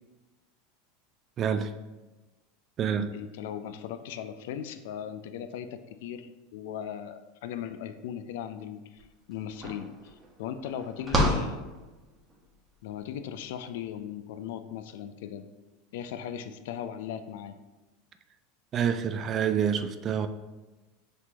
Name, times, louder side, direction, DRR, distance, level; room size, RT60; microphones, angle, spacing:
voice 1, 1.4-1.7 2.8-3.1 18.7-20.3, right 8 dB, 40° right, 10 dB, 0.3 m, -27 dB
voice 2, 3.1-11.6 12.8-15.5 15.9-17.5, left 9 dB, 70° left, 10 dB, 0.3 m, -38 dB
sound 1, 9.0-9.1 9.3-12.4, equal, 25° right, 1.1 m, -30 dB
5.9 x 2.8 x 2.9 m, 1.1 s
hypercardioid pair, 90°, 0 cm